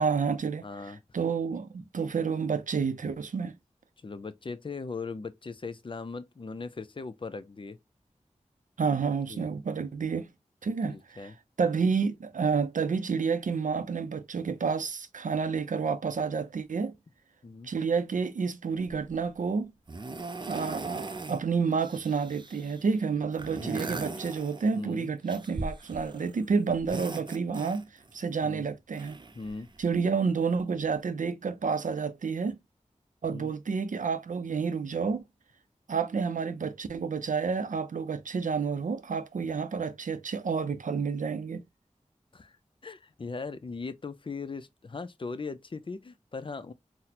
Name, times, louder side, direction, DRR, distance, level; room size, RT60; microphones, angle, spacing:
voice 1, 0.0-3.5 8.8-10.3 10.6-11.3 11.6-16.9 17.6-19.7 20.5-29.2 29.8-32.6 33.2-35.2 35.9-41.6, right 5 dB, 90° right, 0.5 m, -29 dB
voice 2, 0.6-1.0 4.0-7.8 9.3-9.5 10.9-11.3 17.4-17.7 23.6-23.8 24.7-25.1 28.4-28.6 29.3-29.7 33.3-33.5 42.3-42.6 42.8-46.7, left 4 dB, 40° left, 0.4 m, -39 dB
sound 1, 19.0-19.2 19.9-21.4 21.7-22.9 23.3-24.9 25.3-26.4 26.7-28.1 28.9-30.0 30.9-31.0, right 3 dB, 35° right, 0.5 m, -40 dB
4.0 x 2.1 x 2.8 m
wide cardioid pair, 45°, 13 cm